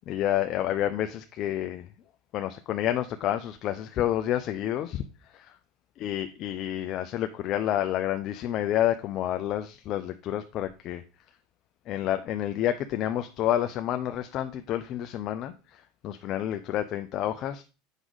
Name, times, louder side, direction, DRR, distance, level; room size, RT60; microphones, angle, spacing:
voice 1, 0.1-1.9 2.3-5.6 6.0-11.0 11.9-17.6, left 12 dB, 45° left, 8 dB, 0.6 m, -29 dB
8.1 x 6.1 x 4.0 m, 0.33 s
supercardioid pair, 110°, 0 cm